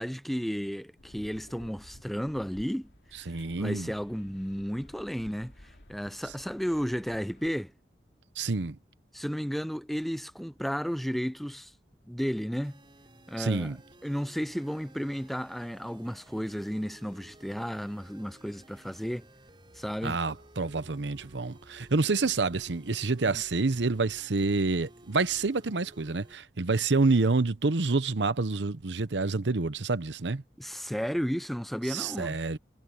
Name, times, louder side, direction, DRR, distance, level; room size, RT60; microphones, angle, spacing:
voice 1, 0.0-2.9 3.1-3.2 3.6-5.5 5.9-7.7 9.1-11.7 12.1-12.8 13.3-13.7 14.0-19.3 19.7-20.2 30.6-32.4, equal, ahead, 0.6 m, -33 dB
sound 1, 1.0-7.5, left 1 dB, 75° left, 2.6 m, -55 dB
voice 2, 3.3-3.9 8.4-8.8 13.4-13.8 20.0-30.4 31.9-32.6, right 3 dB, 90° right, 0.9 m, -28 dB
sound 2, 12.6-26.3, right 1 dB, 30° right, 5.9 m, -56 dB
head